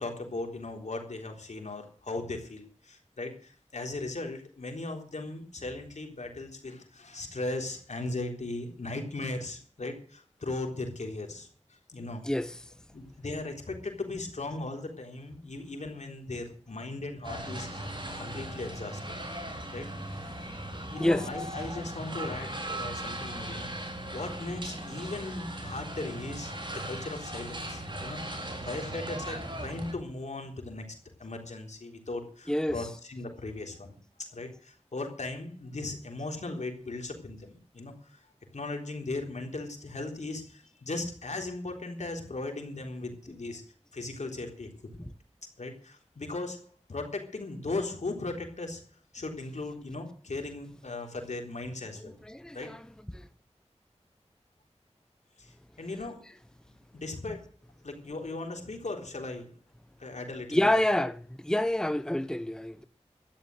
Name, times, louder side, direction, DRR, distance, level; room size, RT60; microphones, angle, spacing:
voice 1, 0.0-11.5 11.9-12.2 12.9-17.9 18.2-19.1 19.7-19.9 20.9-30.9 31.2-33.9 34.3-38.2 38.5-43.6 43.9-44.7 45.0-45.1 45.6-48.8 49.1-52.2 52.5-52.7 55.4-56.3 56.7-57.4 57.8-59.5 60.0-60.6, left 2 dB, 90° left, 3.7 m, -38 dB
voice 2, 12.2-12.6 21.0-21.2 32.5-32.8 52.2-52.8 53.1-53.2 60.5-62.9, left 1 dB, 5° left, 0.9 m, -27 dB
sound 1, 17.2-29.9, right 1 dB, 40° right, 4.1 m, -38 dB
13.0 x 10.5 x 7.8 m
wide cardioid pair, 60°, 12 cm